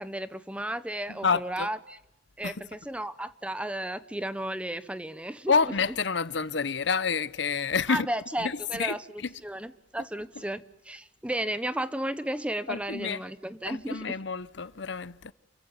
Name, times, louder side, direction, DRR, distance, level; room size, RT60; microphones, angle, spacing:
voice 1, 0.0-2.0 2.4-5.7 7.9-14.2, right 1 dB, 5° right, 0.9 m, -34 dB
voice 2, 1.1-1.7 2.4-2.5 5.5-8.1 8.4-9.3 12.7-13.2 13.7-15.3, left 5 dB, 65° left, 0.8 m, -28 dB
28.0 x 15.5 x 9.9 m
head